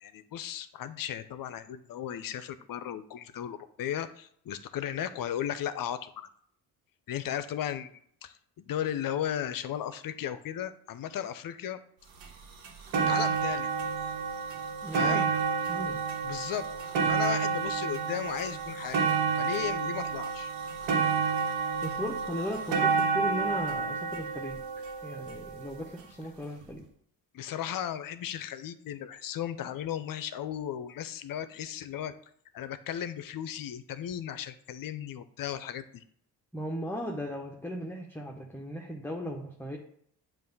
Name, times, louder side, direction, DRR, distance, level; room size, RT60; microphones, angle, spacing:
voice 1, 0.0-6.3 7.1-11.8 13.0-13.7 14.9-15.3 16.2-16.6 17.0-19.0 19.4-20.5 27.3-32.1 32.5-36.0, left 10 dB, 50° left, 13 dB, 0.6 m, -35 dB
sound 1, 12.2-12.3 12.6-25.8 26.6-26.7, right 5 dB, 70° right, 1.3 m, -30 dB
voice 2, 14.8-15.2 15.7-16.0 21.8-24.6 25.0-26.9 36.5-39.8, equal, 5° left, 0 dB, 0.8 m, -37 dB
7.5 x 2.6 x 5.4 m, 0.65 s
supercardioid pair, 65°, 45 cm